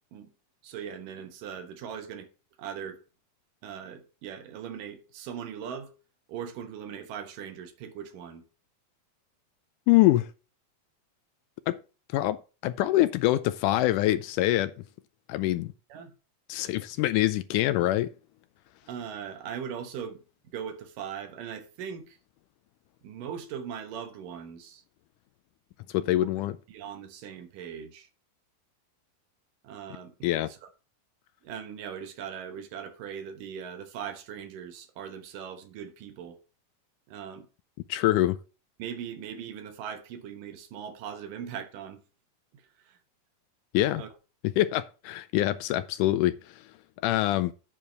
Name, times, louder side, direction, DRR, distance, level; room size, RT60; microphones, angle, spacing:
voice 1, 0.6-2.3 2.6-3.0 3.6-5.9 6.3-8.4 15.9-16.1 18.9-22.2 23.0-24.8 26.0-26.3 26.7-28.1 29.6-30.2 30.5-30.6 31.4-36.4 37.1-37.5 38.8-42.0 42.5-43.0 44.0-44.1, right 8 dB, 75° right, 2.7 m, -40 dB
voice 2, 9.9-10.3 11.7-11.8 12.1-14.8 15.3-15.7 16.5-18.1 25.9-26.5 30.2-30.5 37.9-38.4 43.7-44.0 44.6-46.7 47.0-47.5, left 15 dB, 80° left, 1.9 m, -25 dB
8.7 x 4.6 x 6.7 m
omnidirectional pair, 3.9 m